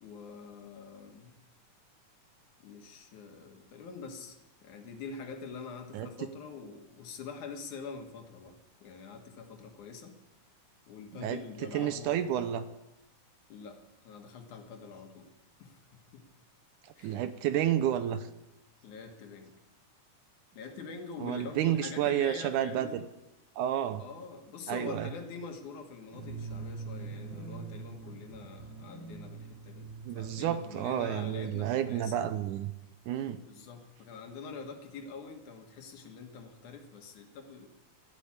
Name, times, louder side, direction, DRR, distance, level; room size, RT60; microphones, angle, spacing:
voice 1, 0.0-1.3 2.6-10.2 10.9-12.2 13.5-15.3 15.6-16.2 17.0-17.2 18.8-19.5 20.6-23.0 24.0-32.3 33.4-37.7, left 5 dB, 75° left, 4 dB, 3.0 m, -45 dB
voice 2, 11.7-12.6 17.0-18.3 21.2-23.0 23.6-24.0 24.7-25.1 30.1-32.7 33.1-33.4, right 11 dB, 80° right, 11 dB, 2.2 m, -30 dB
sound 1, 26.1-31.5, right 4 dB, 25° right, 3.9 m, -44 dB
12.0 x 12.0 x 8.6 m, 0.94 s
omnidirectional pair, 3.6 m